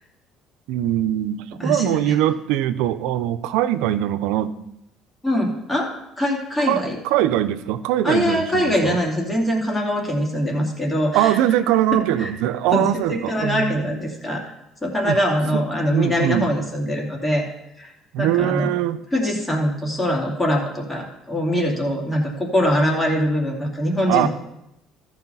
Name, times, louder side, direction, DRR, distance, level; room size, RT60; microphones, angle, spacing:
voice 1, 0.7-4.5 6.7-9.0 11.1-13.8 15.0-15.2 15.5-15.6 15.9-16.5 18.1-19.0 24.1-24.3, right 12 dB, 85° right, 11 dB, 0.5 m, -22 dB
voice 2, 1.6-2.1 5.2-7.0 8.0-11.4 12.2-12.3 12.7-14.4 14.8-17.5 17.8-17.9 18.2-18.7 19.1-24.3, equal, 15° left, -1 dB, 2.7 m, -23 dB
14.0 x 4.8 x 5.5 m, 0.86 s
supercardioid pair, 90°, 0 cm